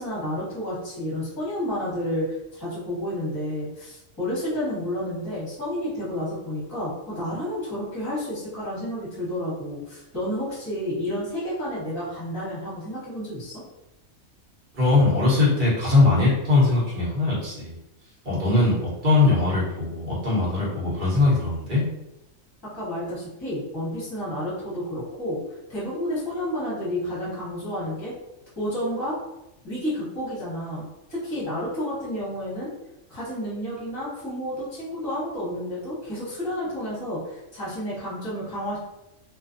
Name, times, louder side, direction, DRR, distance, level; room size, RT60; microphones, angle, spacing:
voice 1, 0.0-13.6 22.7-25.4 25.7-28.1 28.6-29.2 29.6-32.7 33.1-38.8, equal, 20° left, -8 dB, 1.0 m, -30 dB
voice 2, 14.7-17.7 18.2-18.8 19.0-21.8, left 3 dB, 40° right, -6 dB, 1.1 m, -20 dB
2.4 x 2.3 x 2.5 m, 0.90 s
omnidirectional pair, 1.4 m